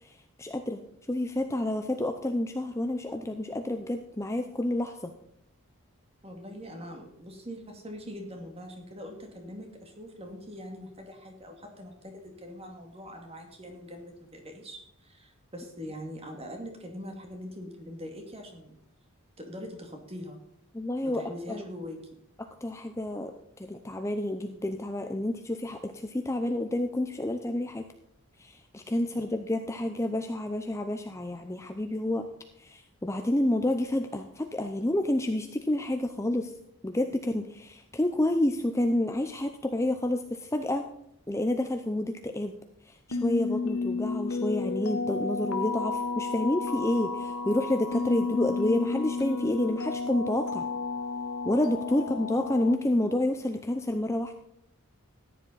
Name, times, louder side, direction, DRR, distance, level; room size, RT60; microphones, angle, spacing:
voice 1, 0.0-0.8 1.1-5.1 20.7-21.2 22.4-23.3 23.6-27.8 28.4-32.3 32.6-36.5 36.8-40.9 41.3-42.5 42.9-50.6 51.5-54.4, left 1 dB, 10° left, 6 dB, 0.5 m, -29 dB
voice 2, 6.2-18.8 19.4-20.4 21.0-22.0 29.1-29.4 52.2-52.4, equal, 25° right, 3 dB, 2.2 m, -42 dB
sound 1, 43.1-52.8, left 4 dB, 80° left, 1.1 m, -32 dB
14.5 x 10.0 x 4.0 m, 0.77 s
head